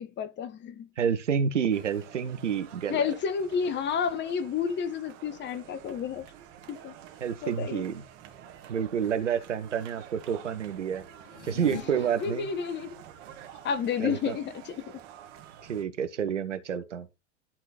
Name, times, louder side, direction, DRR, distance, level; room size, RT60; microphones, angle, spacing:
voice 1, 0.0-0.9 2.9-6.3 6.7-6.9 7.4-7.8 12.2-13.0 13.6-14.9, left 7 dB, 30° left, 1.0 m, -31 dB
voice 2, 1.0-3.1 7.2-8.0 8.7-11.0 11.4-12.5 14.0-14.4 15.6-17.1, right 7 dB, 75° right, 1.0 m, -29 dB
sound 1, 1.7-15.8, right 9 dB, 50° right, 1.5 m, -49 dB
sound 2, 11.2-11.8, left 7 dB, 70° left, 1.6 m, -40 dB
11.5 x 3.9 x 4.2 m
figure-of-eight pair, 75°, 36 cm